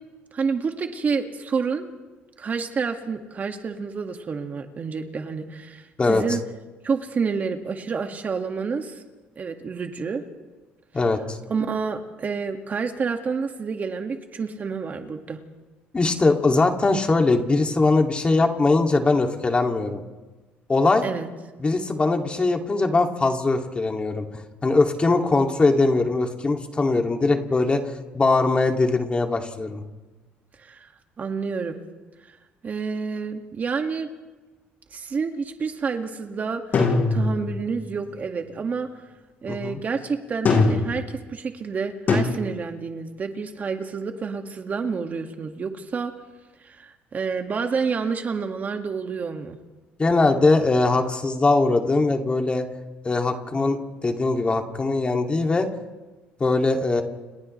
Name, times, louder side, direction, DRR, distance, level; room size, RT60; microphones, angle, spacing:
voice 1, 0.3-1.9 2.4-6.4 6.8-8.9 9.4-10.2 11.5-15.4 21.0-21.3 30.6-30.9 31.2-31.8 32.6-34.1 34.9-36.9 37.1-38.9 39.4-46.1 46.6-49.6, right 5 dB, 40° right, 4 dB, 2.1 m, -29 dB
voice 2, 10.9-11.4 15.9-20.0 20.7-21.0 21.6-27.8 28.1-29.8 39.5-39.8 50.0-52.6 53.0-53.8 54.0-55.7 56.4-57.0, left 3 dB, 25° left, 3 dB, 2.6 m, -21 dB
sound 1, 36.7-37.7 40.4-41.1 42.1-42.2, left 3 dB, 45° left, 6.7 m, -20 dB
30.0 x 29.5 x 3.3 m, 1.2 s
supercardioid pair, 90°, 4 cm